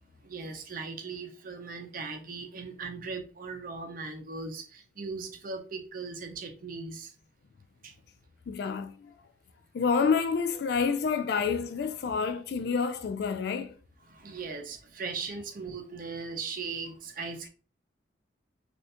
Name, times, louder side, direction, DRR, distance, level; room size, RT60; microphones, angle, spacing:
voice 1, 0.2-7.1 7.8-8.0 14.1-17.5, right 4 dB, 45° right, 0.6 m, -38 dB
voice 2, 8.5-9.1 9.7-13.7, left 5 dB, 55° left, 0.3 m, -28 dB
3.2 x 2.5 x 2.8 m
head